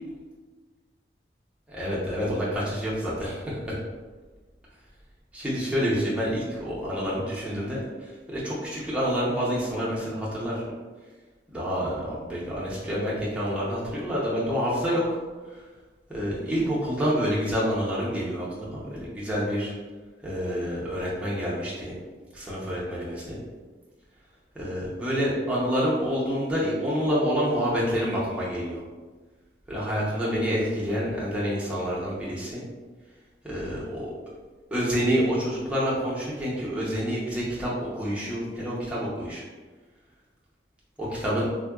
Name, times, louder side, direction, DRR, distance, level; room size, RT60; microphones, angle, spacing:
voice 1, 1.7-3.8 5.3-7.8 8.3-10.6 11.5-15.2 16.1-18.5 18.7-19.7 20.2-21.9 22.3-23.4 24.6-28.8 29.7-32.6 33.4-34.1 34.7-39.4 41.0-41.5, equal, 5° right, -7 dB, 0.6 m, -28 dB
3.6 x 2.2 x 2.3 m, 1.3 s
head